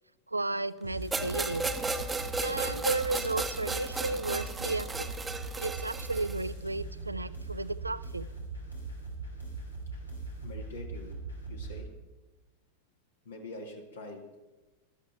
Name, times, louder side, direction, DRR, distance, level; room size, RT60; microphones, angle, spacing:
voice 1, 0.3-1.7 2.4-5.1 5.6-8.3, right 2 dB, 85° right, 17 dB, 0.4 m, -33 dB
sound 1, 0.8-11.8, right 3 dB, 85° left, 3.3 m, -40 dB
sound 2, 1.1-6.5, right 3 dB, 10° right, 0.9 m, -34 dB
voice 2, 10.4-11.1 11.5-11.9 13.3-14.2, left 2 dB, 65° left, 3 dB, 1.9 m, -44 dB
14.5 x 12.0 x 4.3 m, 1.2 s
figure-of-eight pair, 90°, 0 cm